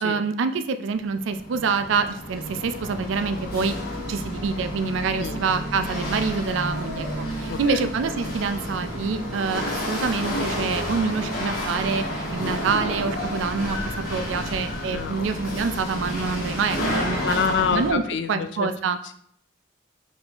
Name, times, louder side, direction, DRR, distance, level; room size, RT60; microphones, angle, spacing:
voice 1, 0.0-3.7 4.1-18.0 18.3-19.0, right 5 dB, 80° right, 10 dB, 0.4 m, -26 dB
Chatter / Hiss / Rattle, 1.0-17.9, equal, 50° left, 1.4 m, -30 dB
voice 2, 7.5-7.9 14.9-15.6 17.2-18.7, left 5 dB, 70° left, 10 dB, 0.4 m, -27 dB
4.0 x 3.4 x 3.4 m, 0.64 s
head